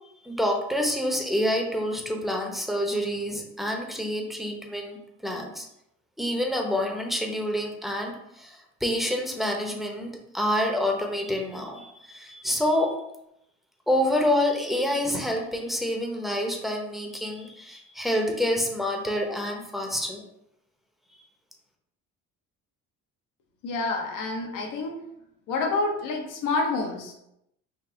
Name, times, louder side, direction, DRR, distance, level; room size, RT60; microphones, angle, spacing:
voice 1, 0.2-5.7 6.2-12.9 13.9-20.2, left 1 dB, ahead, 0 dB, 0.8 m, -27 dB
voice 2, 23.6-25.0 25.5-27.1, left 3 dB, 70° left, 1 dB, 0.9 m, -28 dB
3.8 x 2.6 x 3.8 m, 0.81 s
cardioid pair, 90°, 33 cm